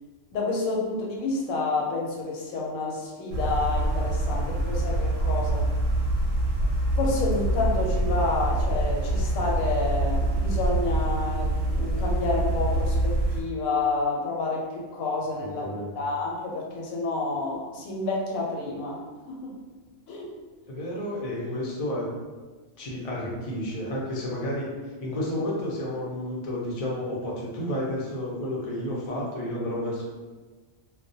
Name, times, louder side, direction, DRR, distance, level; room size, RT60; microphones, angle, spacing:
voice 1, 0.3-5.6 7.0-15.6 16.0-19.0 19.3-19.5 20.1-20.3, left 3 dB, 85° left, -2 dB, 1.0 m, -29 dB
sound 1, 3.3-13.4, right 1 dB, 65° right, 0.8 m, -25 dB
voice 2, 15.4-15.9 20.7-22.1 22.8-30.0, left 1 dB, 55° left, -5 dB, 0.4 m, -31 dB
2.3 x 2.1 x 2.6 m, 1.3 s
omnidirectional pair, 1.4 m